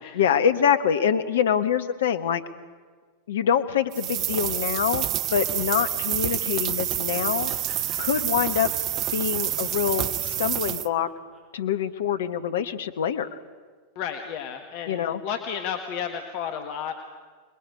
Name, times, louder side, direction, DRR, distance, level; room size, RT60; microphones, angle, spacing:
voice 1, 0.1-2.4 3.3-7.5 8.0-8.7 9.1-11.1 11.5-13.4 14.9-15.2, left 8 dB, 60° left, 11 dB, 1.3 m, -25 dB
sound 1, 3.9-10.9, right 12 dB, 35° right, 0.6 m, -28 dB
Laughter, 6.6-11.8, left 1 dB, 5° right, 7.9 m, -53 dB
voice 2, 14.0-16.9, left 8 dB, 45° left, 5 dB, 1.7 m, -32 dB
26.5 x 21.0 x 8.6 m, 1.5 s
figure-of-eight pair, 90°, 0 cm